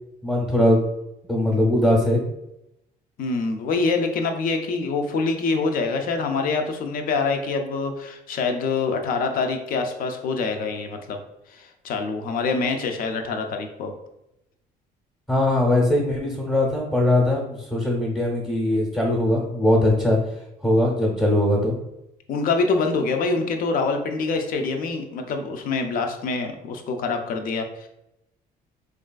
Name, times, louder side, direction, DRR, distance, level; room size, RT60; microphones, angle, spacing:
voice 1, 0.2-0.8 1.3-2.2 15.3-20.2 20.6-21.7, left 1 dB, 10° left, -4 dB, 0.7 m, -20 dB
voice 2, 3.2-11.2 11.5-13.9 22.3-27.9, left 4 dB, 55° left, 5 dB, 0.5 m, -25 dB
3.2 x 2.4 x 2.2 m, 0.85 s
cardioid pair, 110°, 17 cm